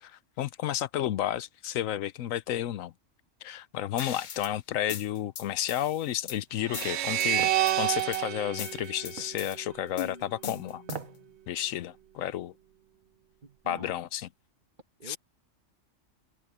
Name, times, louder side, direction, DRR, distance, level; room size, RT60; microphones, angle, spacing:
voice 1, 0.0-2.9 3.4-7.5 7.8-10.8 11.5-12.5 13.7-14.3 15.1-15.2, left 11 dB, 80° left, 1.1 m, -32 dB
sound 1, 4.0-4.5 4.9-6.4 6.7-7.3 7.7-8.2 8.6-9.6 10.0-11.2, left 8 dB, 50° left, 0.6 m, -40 dB
sound 2, 6.7-9.9, right 13 dB, 65° right, 0.8 m, -29 dB
sound 3, 7.4-7.6 9.2-9.4 10.8-11.2 11.6-11.7, right 8 dB, 90° right, 1.5 m, -39 dB
voice 2, 13.4-13.9 15.0-15.2, right 4 dB, 35° right, 1.5 m, -45 dB
omnidirectional pair, 1.4 m